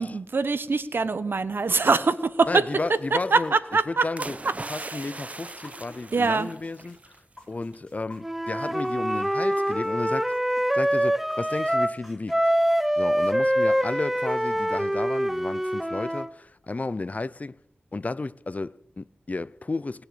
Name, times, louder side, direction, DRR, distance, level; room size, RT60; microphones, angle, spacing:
voice 1, 0.0-2.6 3.3-4.1 4.8-5.0 6.1-6.5, right 4 dB, 70° right, 1.0 m, -23 dB
sound 1, 1.7-6.0 6.4-9.9 10.3-12.1, left 1 dB, 25° left, 4.5 m, -48 dB
voice 2, 2.5-3.5 3.9-4.4 4.7-7.1 7.5-10.3 10.7-12.4 13.0-17.6 17.9-20.1, left 3 dB, 40° left, 0.5 m, -33 dB
sound 2, 4.2-7.2 7.5-7.7, right 2 dB, 40° right, 0.8 m, -39 dB
Wind instrument woodwind instrument, 8.2-12.0 12.3-16.3, equal, 5° right, 0.7 m, -25 dB
19.5 x 6.9 x 9.8 m
wide cardioid pair, 75°, 4 cm